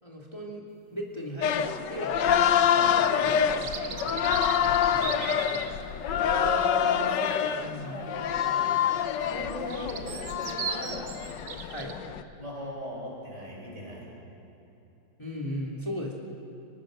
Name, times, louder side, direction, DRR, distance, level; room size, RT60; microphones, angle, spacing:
voice 1, 0.0-0.6 0.9-1.5 1.9-2.1 3.2-4.4 4.6-5.2 7.6-7.9 11.7-11.9 15.2-16.1, equal, 15° left, -2 dB, 2.5 m, -37 dB
sound 1, 1.4-12.2, left 8 dB, 70° left, 1.4 m, -26 dB
sound 2, 3.3-5.7 9.3-11.9, right 7 dB, 70° right, 1.8 m, -37 dB
voice 2, 6.2-7.4 7.9-8.4 9.3-11.1 12.4-14.1, equal, 35° right, -4 dB, 6.4 m, -37 dB
25.0 x 19.0 x 6.4 m, 2.9 s
omnidirectional pair, 2.0 m